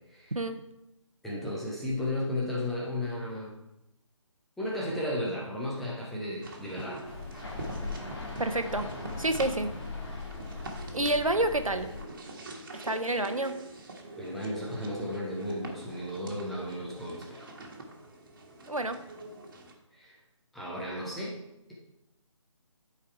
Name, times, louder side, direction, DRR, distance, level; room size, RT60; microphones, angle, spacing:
voice 1, 1.2-3.5 4.6-7.0 14.2-17.5 19.9-20.1 20.5-21.4, left 1 dB, ahead, -5 dB, 0.4 m, -34 dB
sound 1, 6.4-19.7, right 2 dB, 40° right, 1.5 m, -44 dB
sound 2, 7.0-12.0, left 3 dB, 50° left, 2.0 m, -39 dB
voice 2, 8.4-8.9 9.2-9.7 10.9-11.9 12.8-13.5 18.7-19.0, right 2 dB, 90° right, 9 dB, 1.0 m, -28 dB
11.0 x 4.8 x 4.6 m, 0.90 s
figure-of-eight pair, 150°, 17 cm